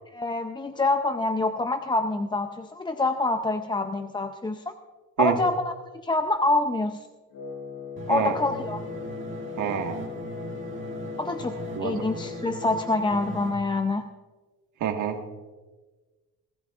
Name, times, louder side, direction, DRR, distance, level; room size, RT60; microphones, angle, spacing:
voice 1, 0.1-4.7 5.2-5.7 6.0-7.1 8.1-8.8 11.2-14.1, left 2 dB, 15° left, 7 dB, 0.6 m, -26 dB
Wind instrument woodwind instrument, 7.3-13.0, left 7 dB, 85° left, 4.4 m, -38 dB
sound 1, 8.0-13.5, right 4 dB, 40° right, 2.0 m, -39 dB
voice 2, 9.6-10.0 11.7-12.0 14.8-15.2, right 8 dB, 70° right, 4 dB, 1.7 m, -27 dB
22.5 x 14.5 x 2.5 m, 1.3 s
cardioid pair, 110°, 31 cm